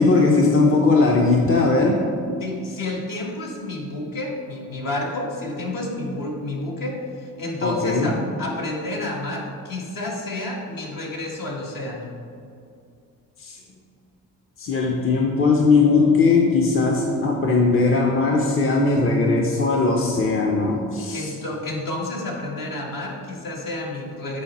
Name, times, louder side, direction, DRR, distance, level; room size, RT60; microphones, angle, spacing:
voice 1, 0.0-2.0 7.6-8.1 13.4-13.6 14.6-21.3, left 3 dB, 35° left, 0 dB, 0.8 m, -19 dB
voice 2, 2.4-12.1 21.1-24.4, left 2 dB, 60° left, -2 dB, 1.7 m, -30 dB
8.7 x 4.1 x 4.2 m, 2.4 s
cardioid pair, 80°, 36 cm